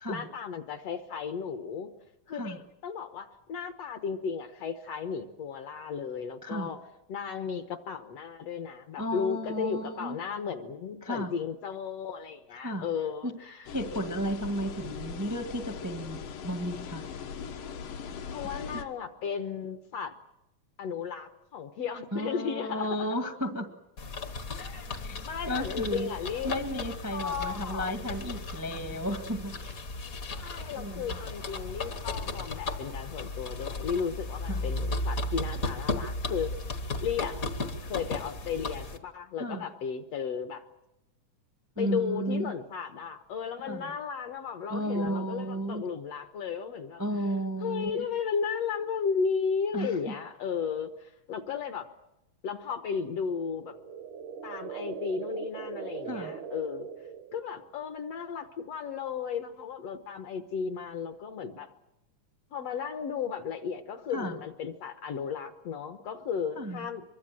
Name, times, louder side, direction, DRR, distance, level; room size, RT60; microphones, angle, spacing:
voice 1, 0.1-1.9 2.3-6.8 7.1-13.7 18.3-20.1 20.8-23.1 24.6-26.5 27.1-27.9 30.4-36.5 37.0-37.4 37.8-40.6 41.8-47.0 47.6-51.9 52.4-53.8 54.4-56.9 57.3-61.7 62.5-67.0, left 6 dB, 60° left, 8 dB, 1.9 m, -34 dB
voice 2, 9.0-10.2 11.0-11.3 12.6-12.9 13.2-13.3 13.6-17.0 18.4-18.6 22.1-23.7 25.0-25.2 25.5-26.1 26.4-29.6 30.8-31.2 34.5-34.6 39.4-39.7 41.7-42.5 43.7-43.9 44.7-45.8 47.0-48.0 49.7-50.1 56.0-56.3 64.1-64.4 66.5-66.9, equal, 10° right, 6 dB, 0.8 m, -33 dB
sound 1, 13.7-18.8, left 6 dB, 75° left, 3.0 m, -40 dB
sound 2, 24.0-39.0, left 2 dB, 45° left, 1.2 m, -35 dB
sound 3, 53.4-57.7, right 7 dB, 70° right, 2.5 m, -41 dB
24.5 x 23.5 x 7.6 m, 0.87 s
omnidirectional pair, 3.8 m